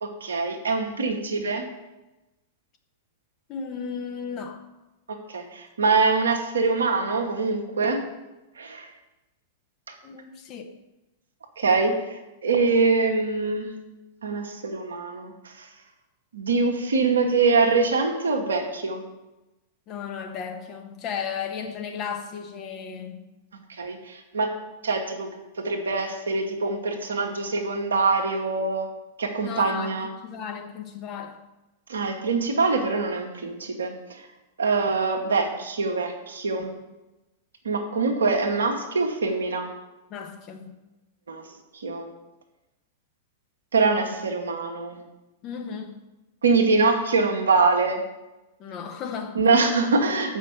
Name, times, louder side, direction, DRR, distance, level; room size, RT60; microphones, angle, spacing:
voice 1, 0.0-1.6 5.3-8.0 8.6-8.9 11.6-13.7 14.2-15.3 15.6-15.7 16.3-19.0 23.7-24.5 24.8-25.3 25.6-28.9 29.2-30.1 31.9-33.9 34.6-36.7 37.6-39.7 41.3-41.4 41.7-42.1 43.7-45.0 46.4-48.0 49.3-50.4, right 4 dB, 70° right, 1.3 m, -24 dB
voice 2, 3.5-4.6 10.0-10.7 19.9-23.2 29.4-30.0 30.2-31.5 40.1-40.8 45.4-46.0 48.6-49.4, left 6 dB, 35° left, 1.1 m, -35 dB
7.4 x 5.6 x 7.0 m
figure-of-eight pair, 95°, 0 cm